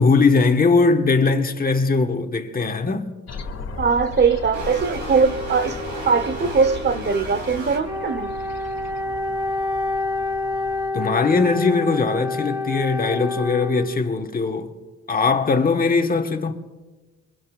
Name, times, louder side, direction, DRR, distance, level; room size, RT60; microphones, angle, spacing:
voice 1, 0.0-3.1 10.9-14.7 15.1-16.6, left 4 dB, 30° left, 1.4 m, -20 dB
sound 1, 3.3-10.9, left 5 dB, 55° left, 1.9 m, -36 dB
voice 2, 3.8-5.8 6.1-8.3, right 5 dB, 35° right, 1.0 m, -20 dB
sound 2, 4.5-7.8, right 2 dB, 80° right, 3.5 m, -33 dB
Wind instrument woodwind instrument, 7.8-14.2, left 2 dB, 15° right, 2.0 m, -27 dB
23.5 x 22.0 x 2.4 m
cardioid pair, 90°, 30 cm